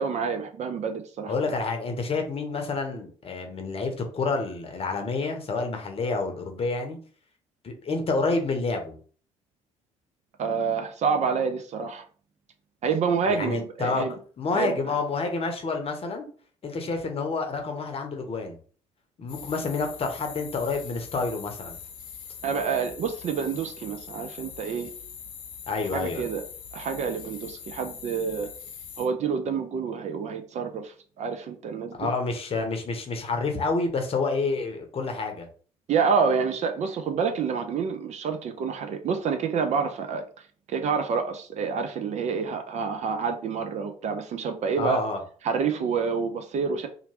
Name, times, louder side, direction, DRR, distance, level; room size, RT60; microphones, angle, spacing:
voice 1, 0.0-1.3 10.4-12.0 12.8-14.1 14.5-15.0 22.4-24.9 25.9-26.4 26.7-28.5 29.0-32.1 35.9-40.2 40.7-45.0 45.4-46.9, right 6 dB, 45° right, 6 dB, 0.5 m, -28 dB
voice 2, 1.3-7.0 7.6-9.0 13.3-16.3 16.6-18.6 19.2-21.8 25.7-26.2 31.9-35.5 44.7-45.2, left 3 dB, 35° left, 4 dB, 0.8 m, -28 dB
sound 1, 19.3-29.1, left 7 dB, 65° left, 0.6 m, -42 dB
2.8 x 2.5 x 2.9 m, 0.43 s
figure-of-eight pair, 50°, 17 cm